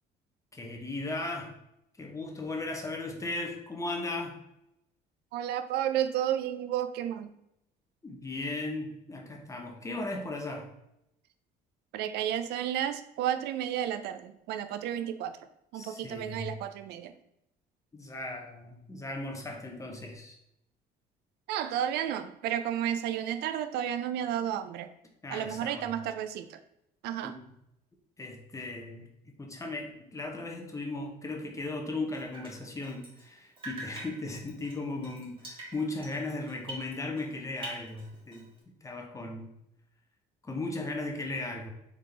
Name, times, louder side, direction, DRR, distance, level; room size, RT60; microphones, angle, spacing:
voice 1, 0.5-1.5 2.0-4.4 8.0-10.7 15.8-16.5 17.9-20.4 25.2-25.9 27.2-27.5 28.2-38.5 38.8-39.5 40.4-41.7, left 2 dB, 20° left, 2 dB, 0.8 m, -37 dB
voice 2, 5.3-7.3 11.9-15.4 15.7-17.1 21.5-24.9 25.3-26.6 27.0-27.3, right 10 dB, 80° right, 10 dB, 0.4 m, -32 dB
Drip, 32.1-33.3 33.6-37.3 37.6-38.6, right 1 dB, 30° right, 1.6 m, -45 dB
3.8 x 3.6 x 3.3 m, 0.81 s
cardioid pair, 110°, 17 cm